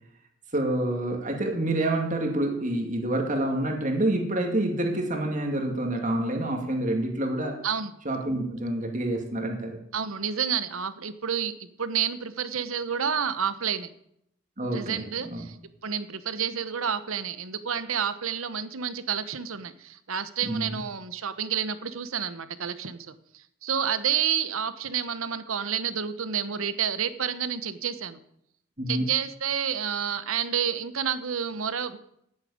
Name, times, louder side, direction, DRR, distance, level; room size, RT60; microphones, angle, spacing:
voice 1, 0.5-7.6 8.0-9.8 14.6-15.4 20.4-20.7 28.8-29.1, right 1 dB, 35° right, 2 dB, 2.3 m, -27 dB
voice 2, 9.9-13.9 14.7-15.6 15.8-28.2 28.9-32.0, right 7 dB, 85° right, 12 dB, 1.0 m, -29 dB
9.9 x 9.0 x 8.6 m, 0.74 s
head